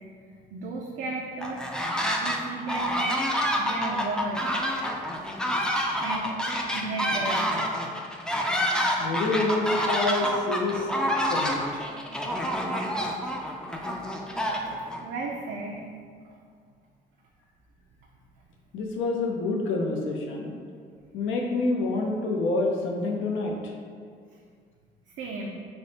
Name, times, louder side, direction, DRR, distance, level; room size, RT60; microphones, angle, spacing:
voice 1, 0.5-1.7 2.2-3.3 3.6-4.5 6.0-6.4 6.7-7.6 15.0-15.9 24.3-24.4 25.2-25.5, right 2 dB, 75° right, -2 dB, 0.4 m, -34 dB
sound 1, 1.4-2.4 2.7-15.0, equal, 5° left, 0.3 m, -28 dB
voice 2, 9.0-10.9 11.3-11.8 18.7-20.6 21.1-23.5, left 2 dB, 80° left, 0 dB, 0.5 m, -27 dB
3.4 x 2.0 x 3.9 m, 2.1 s
cardioid pair, 90°, 20 cm